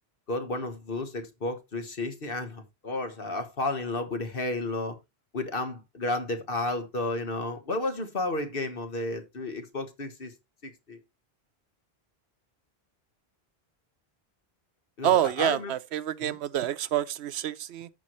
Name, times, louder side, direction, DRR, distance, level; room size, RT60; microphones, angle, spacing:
voice 1, 0.3-5.0 5.3-10.3 10.6-11.0 15.0-15.7 16.2-16.4, left 2 dB, 60° left, 1.5 m, -32 dB
voice 2, 15.0-17.9, right 11 dB, 85° right, 0.9 m, -27 dB
14.0 x 4.7 x 3.0 m
omnidirectional pair, 1.1 m